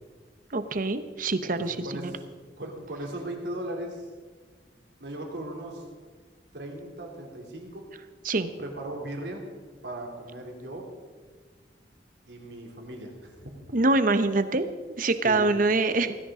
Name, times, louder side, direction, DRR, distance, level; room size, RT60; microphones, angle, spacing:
voice 1, 0.5-2.1 8.2-8.5 13.7-14.7 15.0-16.2, right 2 dB, 50° right, 11 dB, 0.8 m, -25 dB
voice 2, 2.6-4.1 5.0-5.8 6.5-7.9 8.6-9.4 9.8-10.9 12.3-13.3 15.2-15.4, right 1 dB, 75° right, 1 dB, 3.0 m, -37 dB
17.5 x 15.5 x 3.7 m, 1.5 s
head